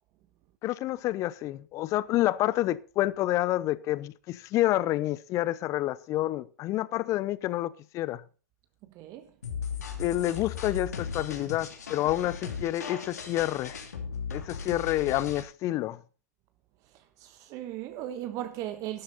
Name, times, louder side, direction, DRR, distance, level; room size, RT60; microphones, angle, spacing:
voice 1, 0.6-8.2 10.0-13.8 14.3-16.0, left 15 dB, 35° left, 0.7 m, -28 dB
voice 2, 8.9-9.3 14.7-14.9 16.9-19.0, right 13 dB, 40° right, 1.2 m, -38 dB
sound 1, 9.4-15.4, left 6 dB, 80° left, 3.0 m, -37 dB
12.0 x 12.0 x 4.1 m
hypercardioid pair, 105°, 9 cm